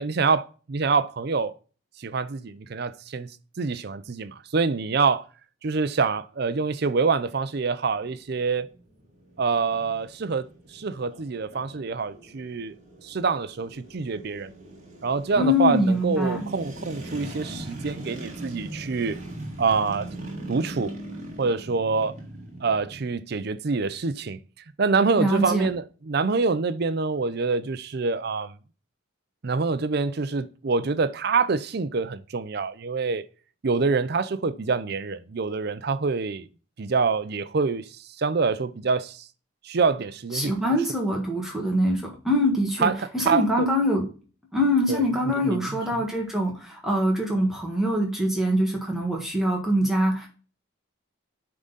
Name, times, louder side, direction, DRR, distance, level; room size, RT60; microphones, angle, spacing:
voice 1, 0.0-1.5 2.0-5.2 5.6-8.7 9.4-10.5 10.7-12.8 13.0-14.5 15.0-19.2 19.6-20.1 20.5-20.9 21.4-22.1 22.6-24.4 24.8-28.5 29.4-33.2 33.6-36.5 36.8-39.2 39.6-40.5 42.8-43.7 44.9-45.0 45.4-46.0, right 4 dB, 50° right, 0.5 m, -26 dB
sound 1, 7.9-23.1, right 1 dB, 35° right, 2.0 m, -41 dB
voice 2, 15.4-16.5 25.2-25.7 40.3-44.1 44.5-50.3, equal, ahead, 1.4 m, -24 dB
8.6 x 3.8 x 3.9 m
head